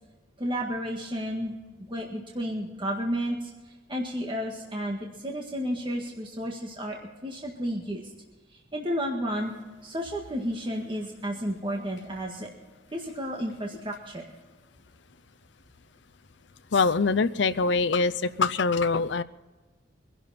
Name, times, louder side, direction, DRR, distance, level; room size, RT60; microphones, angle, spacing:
voice 1, 0.4-1.6 1.9-3.5 3.9-8.1 8.5-9.5 9.8-12.5 12.9-14.4, equal, 25° right, 0 dB, 1.7 m, -32 dB
voice 2, 16.7-19.2, left 4 dB, 60° left, 13 dB, 0.6 m, -24 dB
23.0 x 11.0 x 4.3 m, 1.3 s
head